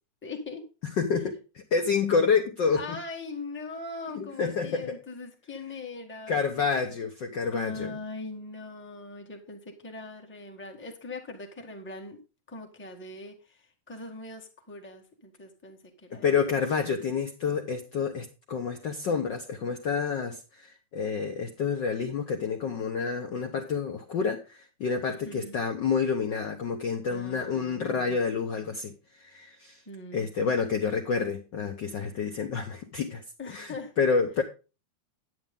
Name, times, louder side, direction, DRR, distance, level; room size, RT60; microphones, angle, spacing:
voice 1, 0.2-0.6 2.7-6.4 7.5-12.2 12.5-16.4 25.1-25.5 27.1-28.2 29.8-30.3 33.4-33.9, left 3 dB, 5° left, 2 dB, 0.9 m, -41 dB
voice 2, 1.0-3.0 4.1-5.0 6.3-7.9 16.2-29.8 30.1-33.2 33.5-34.4, left 5 dB, 80° left, 4 dB, 1.0 m, -28 dB
9.7 x 9.6 x 3.7 m, 0.32 s
omnidirectional pair, 3.4 m